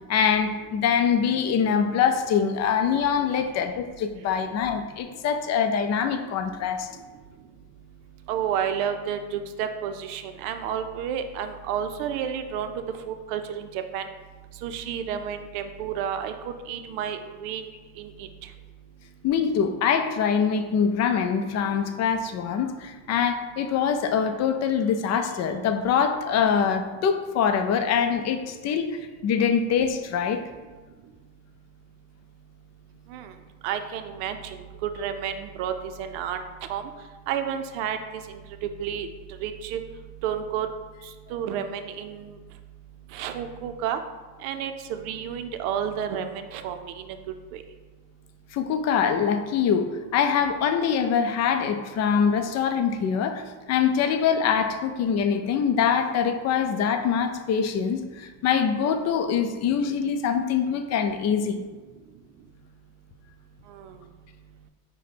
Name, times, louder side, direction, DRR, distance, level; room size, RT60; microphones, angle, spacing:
voice 1, 0.1-6.9 19.2-30.4 48.5-61.6, left 7 dB, 40° left, 7 dB, 0.4 m, -24 dB
voice 2, 8.3-12.7 13.1-14.0 14.6-16.3 16.7-17.6 18.0-18.3 33.1-33.3 33.6-35.7 36.0-36.4 36.7-36.9 37.3-38.0 38.3-38.4 38.8-39.1 39.4-39.8 40.2-40.7 41.3-42.3 43.1-44.0 44.4-46.9 47.5-47.6 63.8-63.9, right 8 dB, 75° right, 8 dB, 0.6 m, -30 dB
4.9 x 2.2 x 4.2 m, 1.3 s
supercardioid pair, 100°, 43 cm